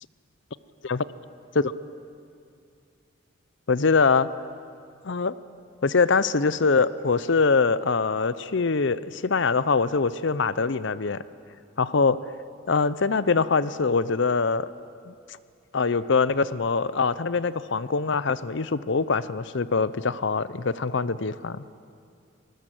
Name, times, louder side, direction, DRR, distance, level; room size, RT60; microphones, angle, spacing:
voice 1, 3.7-4.3 5.0-5.4 5.8-11.2 11.8-12.2 12.7-14.7 15.1-15.2 15.7-21.6, left 4 dB, 60° left, 16 dB, 0.6 m, -23 dB
25.5 x 20.0 x 7.8 m, 2.4 s
head